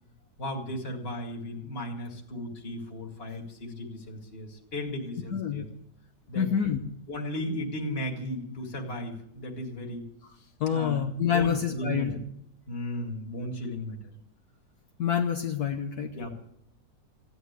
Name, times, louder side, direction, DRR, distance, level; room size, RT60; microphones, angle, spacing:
voice 1, 0.4-5.7 6.3-6.5 7.1-10.0 10.7-11.0 11.3-12.2 12.7-14.0 16.1-16.5, left 1 dB, 30° left, 1 dB, 2.6 m, -35 dB
voice 2, 5.3-5.7 6.3-6.8 10.6-12.1 15.0-16.1, left 8 dB, 60° left, 4 dB, 1.4 m, -27 dB
16.0 x 10.5 x 8.2 m, 0.76 s
omnidirectional pair, 2.0 m